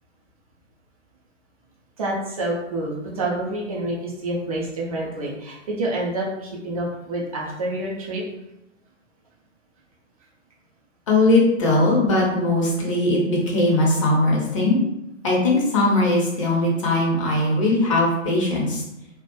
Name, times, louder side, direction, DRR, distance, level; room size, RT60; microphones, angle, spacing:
voice 1, 2.0-8.2, right 1 dB, 30° right, -3 dB, 0.5 m, -28 dB
voice 2, 11.1-14.8 15.2-18.8, left 2 dB, 25° left, -3 dB, 0.5 m, -20 dB
2.2 x 2.2 x 2.8 m, 0.88 s
figure-of-eight pair, 125°, 38 cm